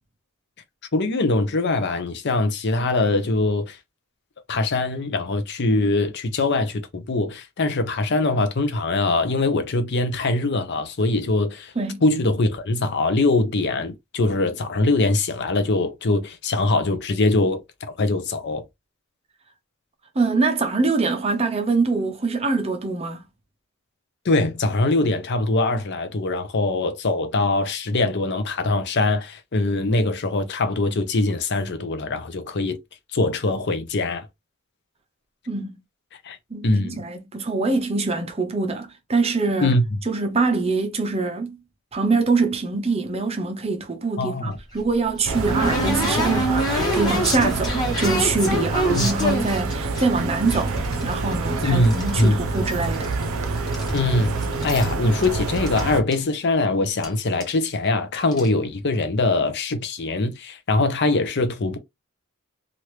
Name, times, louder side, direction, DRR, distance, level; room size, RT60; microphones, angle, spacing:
voice 1, 0.9-3.8 4.5-11.7 12.0-18.6 24.2-32.8 33.1-34.3 36.2-36.4 36.6-37.0 39.6-40.0 44.2-44.6 48.9-49.1 51.6-52.3 53.9-61.8, left 2 dB, 55° left, 0.6 m, -22 dB
voice 2, 20.2-23.2 35.5-35.7 36.5-39.7 40.1-41.6 41.9-53.1, right 3 dB, 30° right, 0.7 m, -24 dB
sound 1, 44.6-50.0 50.5-52.3 52.5-53.3 53.6-54.9 55.2-55.3 55.6-55.8 56.1-56.2 57.0-57.1 57.4-57.6 58.2-58.5, equal, 20° left, 1.4 m, -26 dB
sound 2, 45.3-56.0, right 3 dB, 80° right, 0.6 m, -27 dB
2.9 x 2.5 x 3.2 m
head